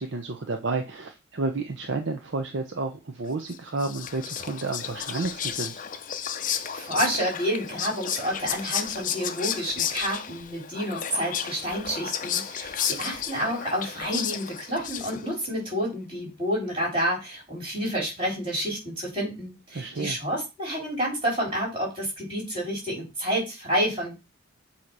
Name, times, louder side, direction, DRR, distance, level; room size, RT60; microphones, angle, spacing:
voice 1, 0.0-5.7 19.7-20.2, right 3 dB, 55° right, 4 dB, 0.6 m, -31 dB
Whispering, 3.5-15.5, left 8 dB, 40° left, 0.5 m, -32 dB
voice 2, 6.4-24.1, equal, 25° right, -2 dB, 3.7 m, -29 dB
7.5 x 2.9 x 4.7 m, 0.25 s
head